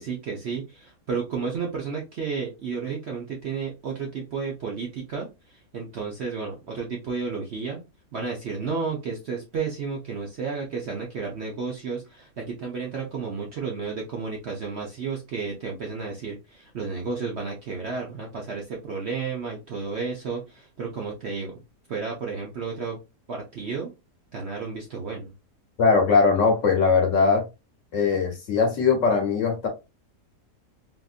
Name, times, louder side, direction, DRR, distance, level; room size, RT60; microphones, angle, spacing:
voice 1, 0.0-7.8 8.1-21.6 21.9-23.0 23.3-23.9 24.3-25.3, right 5 dB, 55° right, 0.8 m, -32 dB
voice 2, 25.8-27.4 27.9-29.7, left 5 dB, 55° left, 1.0 m, -20 dB
3.5 x 2.5 x 2.4 m
omnidirectional pair, 1.7 m